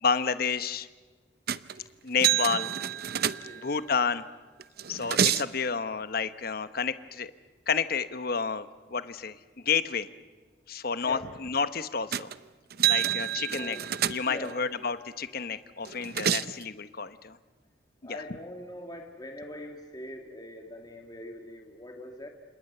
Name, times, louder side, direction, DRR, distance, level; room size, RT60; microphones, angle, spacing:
voice 1, 0.0-0.9 2.0-2.7 3.6-4.3 4.9-7.3 7.7-9.4 9.6-10.1 10.7-12.3 12.9-13.8 14.1-17.4 18.1-18.2, left 5 dB, 55° left, 12 dB, 1.0 m, -30 dB
sound 1, 1.5-1.8 2.2-3.8 4.6-5.5 12.1-12.4 12.7-14.5 15.8-16.6, right 10 dB, 55° right, 0.7 m, -28 dB
voice 2, 3.3-3.7 11.1-11.2 13.5-13.9 14.3-14.6 18.0-22.3, left 1 dB, 20° left, 3 dB, 2.0 m, -42 dB
29.5 x 27.0 x 6.7 m, 1.4 s
head